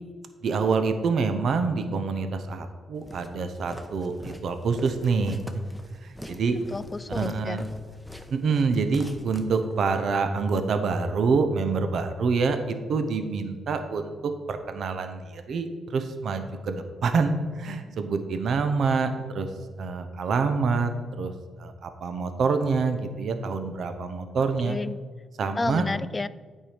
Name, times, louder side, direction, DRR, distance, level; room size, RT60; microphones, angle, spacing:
voice 1, 0.4-5.4 6.0-6.6 7.1-7.7 8.3-19.5 19.8-20.9 21.2-21.3 21.6-24.8 25.4-25.8, right 4 dB, 65° right, 8 dB, 0.7 m, -26 dB
Walk footsteps, 3.1-10.0, equal, 5° right, 0.9 m, -43 dB
voice 2, 6.7-7.6 24.6-25.0 25.6-26.3, left 3 dB, 25° left, 16 dB, 0.3 m, -31 dB
8.8 x 4.6 x 5.0 m, 1.5 s
cardioid pair, 70°, 0 cm